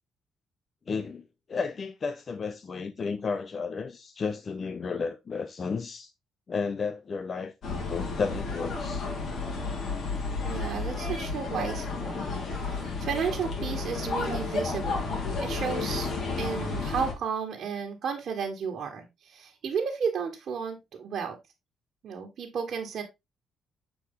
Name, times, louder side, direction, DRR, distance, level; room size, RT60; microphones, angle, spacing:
voice 1, 0.9-1.2 1.5-6.1 6.5-9.1, left 5 dB, 40° left, 0.7 m, -33 dB
sound 1, 7.6-17.1, left 3 dB, 60° left, 3.1 m, -32 dB
voice 2, 10.4-15.1 15.4-16.1 16.4-21.4 22.0-23.0, right 6 dB, 60° right, 1.5 m, -33 dB
8.1 x 4.6 x 3.7 m
cardioid pair, 90°, 0 cm